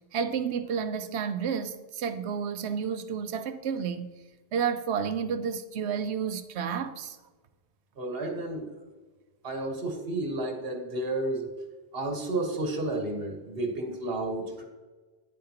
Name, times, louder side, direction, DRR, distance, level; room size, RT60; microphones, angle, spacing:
voice 1, 0.1-4.1 4.5-7.2, right 7 dB, 85° right, 0.9 m, -31 dB
voice 2, 8.0-8.7 9.4-11.5 11.9-14.6, right 2 dB, 65° right, 1.5 m, -31 dB
9.4 x 8.6 x 2.9 m
omnidirectional pair, 1.1 m